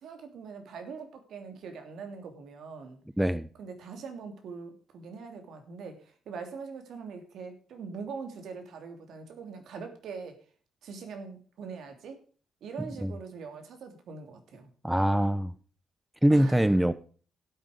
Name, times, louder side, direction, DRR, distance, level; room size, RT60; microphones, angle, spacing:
voice 1, 0.0-3.0 3.6-6.0 6.3-10.4 10.8-12.2 12.6-14.7 16.3-16.7, right 5 dB, 70° right, 2.9 m, -42 dB
voice 2, 3.2-3.5 12.8-13.1 14.8-15.5 16.2-16.9, right 1 dB, 5° right, 0.7 m, -24 dB
12.0 x 8.7 x 5.0 m
cardioid pair, 90°, 0 cm